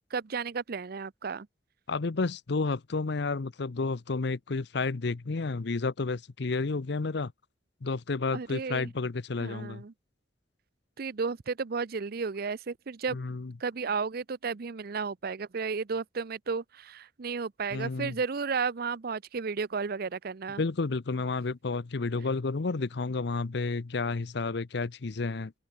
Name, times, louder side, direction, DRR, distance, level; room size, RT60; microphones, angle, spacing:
voice 1, 0.1-1.5 8.3-8.9 9.4-9.9 11.0-13.2 13.6-20.6, right 5 dB, 55° right, 0.6 m, -33 dB
voice 2, 1.9-7.3 7.8-9.8 13.1-13.5 17.7-18.2 20.6-25.5, left 3 dB, 65° left, 0.7 m, -31 dB
open air
head